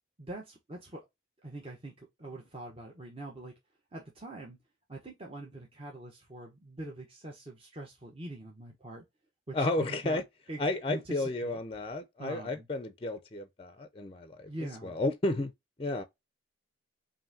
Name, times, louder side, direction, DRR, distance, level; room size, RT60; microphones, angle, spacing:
voice 1, 0.2-1.0 1.4-3.5 3.9-4.6 4.9-9.0 9.5-10.2 10.5-10.6 10.9-11.6 12.2-12.7 14.5-14.9, right 2 dB, 30° right, 0.9 m, -43 dB
voice 2, 9.5-10.2 10.6-14.5 14.8-15.5 15.8-16.0, left 2 dB, 30° left, 0.5 m, -32 dB
5.5 x 2.6 x 2.7 m
head